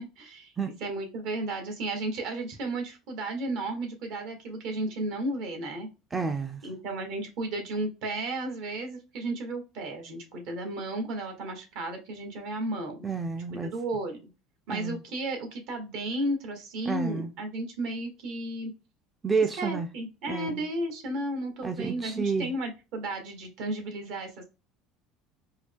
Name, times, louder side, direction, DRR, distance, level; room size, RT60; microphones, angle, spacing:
voice 1, 0.0-0.5 0.8-5.9 6.6-13.0 13.5-14.2 14.7-18.7 19.6-24.4, right 2 dB, 65° right, 1.5 m, -33 dB
voice 2, 6.1-6.6 13.0-13.7 14.7-15.0 16.8-17.3 19.2-19.9 20.3-20.6 21.6-22.5, right 5 dB, 20° right, 0.4 m, -30 dB
4.5 x 2.2 x 3.5 m
cardioid pair, 135°, 0 cm